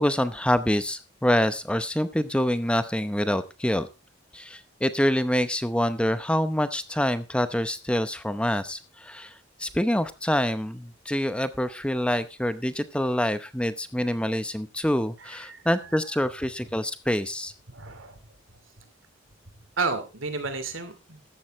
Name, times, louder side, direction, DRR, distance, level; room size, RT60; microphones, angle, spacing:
voice 1, 0.0-3.9 4.3-9.3 9.6-17.5, equal, 5° left, 12 dB, 0.7 m, -26 dB
voice 2, 15.2-15.6 17.7-18.2 19.8-21.2, right 3 dB, 85° right, 10 dB, 2.7 m, -32 dB
14.5 x 12.0 x 3.2 m, 0.28 s
head